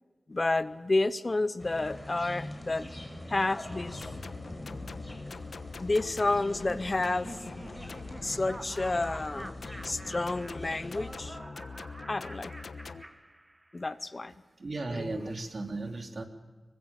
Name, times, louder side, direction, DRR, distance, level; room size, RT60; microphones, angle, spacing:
voice 1, 0.3-2.9 3.3-4.0 5.8-7.4 8.2-9.5 9.8-11.4 12.1-12.5 13.7-14.3, left 2 dB, 35° left, 14 dB, 0.8 m, -30 dB
sound 1, 1.6-11.3, left 1 dB, 15° left, 5.9 m, -44 dB
sound 2, 3.7-13.0, left 4 dB, 70° left, 1.2 m, -44 dB
Laughter, 6.5-14.0, right 1 dB, 15° right, 1.3 m, -47 dB
voice 2, 14.6-16.3, right 2 dB, 50° right, 4 dB, 3.0 m, -36 dB
26.0 x 24.0 x 7.3 m, 1.4 s
wide cardioid pair, 95°, 0 cm